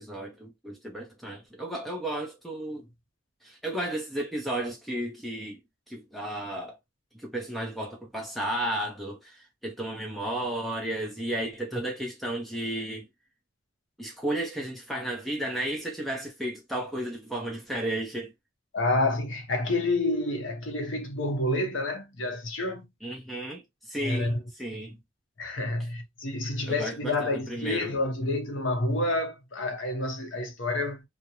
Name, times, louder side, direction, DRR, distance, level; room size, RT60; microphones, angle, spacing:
voice 1, 0.0-2.9 3.4-5.6 5.9-6.8 7.1-13.1 14.0-18.3 23.0-24.3 24.6-25.0 26.7-28.0, right 1 dB, ahead, 0.7 m, -33 dB
voice 2, 18.7-22.9 24.0-24.4 25.4-31.0, left 2 dB, 70° left, 0.8 m, -29 dB
2.4 x 2.1 x 2.8 m
head